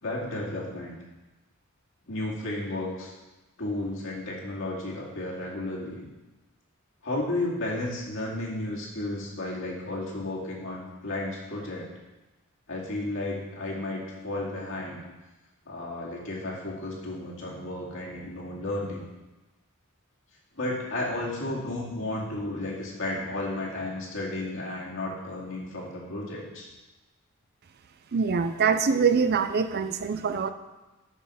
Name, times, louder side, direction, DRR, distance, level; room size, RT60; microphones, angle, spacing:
voice 1, 0.0-1.0 2.1-3.1 3.6-6.1 7.0-11.9 12.7-15.0 15.7-19.0 20.6-26.7, left 2 dB, 65° left, -4 dB, 2.2 m, -33 dB
voice 2, 28.1-30.5, right 5 dB, 50° right, 10 dB, 0.4 m, -24 dB
7.4 x 6.4 x 5.6 m, 1.1 s
head